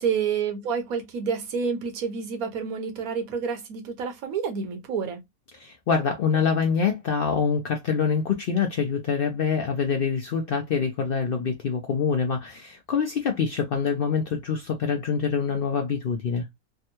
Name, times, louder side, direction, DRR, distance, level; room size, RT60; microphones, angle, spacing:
voice 1, 0.0-5.2, right 6 dB, 85° right, 1.3 m, -29 dB
voice 2, 5.6-16.5, left 6 dB, 60° left, 0.6 m, -25 dB
3.4 x 2.2 x 2.8 m
omnidirectional pair, 1.5 m